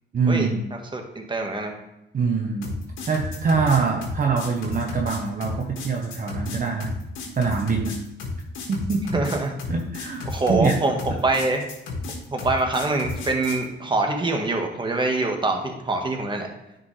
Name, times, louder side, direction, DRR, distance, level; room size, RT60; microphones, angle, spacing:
voice 1, 0.1-0.7 2.1-2.8 3.1-6.9 7.4-8.0 8.7-9.2 9.7-11.2, right 4 dB, 45° right, 1 dB, 1.0 m, -24 dB
voice 2, 0.9-1.7 9.1-9.5 10.2-11.7 12.3-16.5, right 2 dB, 25° right, 3 dB, 1.4 m, -24 dB
sound 1, 2.6-13.6, left 3 dB, 80° left, 1.7 m, -32 dB
9.6 x 5.2 x 3.3 m, 0.91 s
cardioid pair, 90°, 20 cm